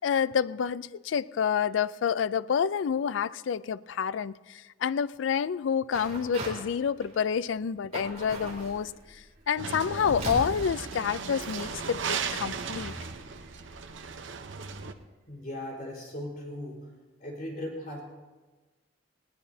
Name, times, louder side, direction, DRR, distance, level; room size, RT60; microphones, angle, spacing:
voice 1, 0.0-12.9, left 7 dB, 90° left, 0.4 m, -28 dB
sound 1, 5.9-6.6 7.0-7.5 7.9-8.8 9.6-12.0, right 1 dB, 35° right, 3.0 m, -38 dB
sound 2, 7.9-14.8, right 1 dB, 60° right, 1.7 m, -50 dB
sound 3, 9.6-14.9, right 5 dB, 80° right, 0.8 m, -36 dB
voice 2, 15.3-16.9 17.2-18.0, left 1 dB, 50° left, 4.3 m, -38 dB
20.0 x 18.0 x 2.8 m
head